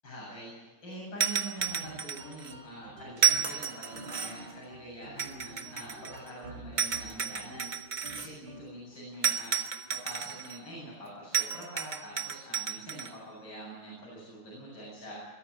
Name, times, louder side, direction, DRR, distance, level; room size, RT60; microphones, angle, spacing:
voice 1, 0.0-15.2, right 1 dB, 55° left, -5 dB, 8.3 m, -45 dB
sound 1, 1.2-2.5 3.2-4.5 5.2-6.3 6.8-8.3 9.2-10.6 11.3-13.1, right 7 dB, 35° right, 0.8 m, -31 dB
sound 2, 1.6-8.9, right 2 dB, 80° right, 5.4 m, -49 dB
22.0 x 14.0 x 9.6 m, 1.3 s
omnidirectional pair, 2.3 m